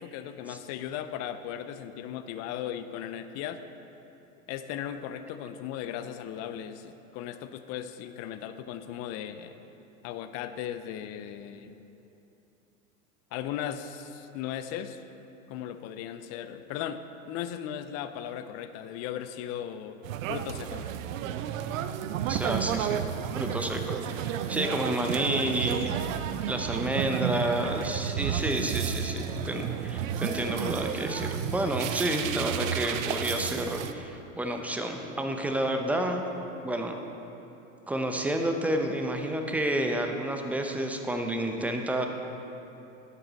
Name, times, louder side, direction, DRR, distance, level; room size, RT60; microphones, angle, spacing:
voice 1, 0.0-3.6 4.5-9.6 10.0-11.8 13.3-15.0 15.5-20.0 20.3-20.9, left 10 dB, 40° left, 10 dB, 0.6 m, -37 dB
sound 1, 20.0-33.9, right 9 dB, 70° right, 0.6 m, -32 dB
voice 2, 22.3-23.1 23.4-26.0 26.5-36.2 36.6-37.0 37.9-42.1, right 1 dB, 5° right, 4 dB, 0.7 m, -30 dB
11.5 x 8.2 x 4.1 m, 2.9 s
hypercardioid pair, 100°, 41 cm